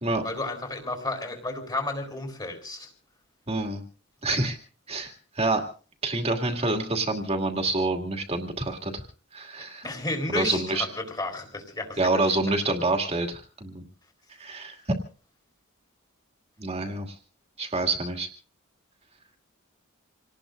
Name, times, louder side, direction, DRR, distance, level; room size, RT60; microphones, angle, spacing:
voice 1, 0.2-2.9 9.8-12.3, left 2 dB, 20° left, 4 dB, 4.0 m, -32 dB
voice 2, 3.5-3.8 4.2-4.6 4.9-5.6 6.0-9.0 9.3-9.9 10.3-10.9 12.0-13.8 14.4-14.8 16.6-17.1 17.6-18.3, right 2 dB, 30° right, 4 dB, 2.4 m, -27 dB
27.5 x 18.5 x 2.6 m, 0.37 s
head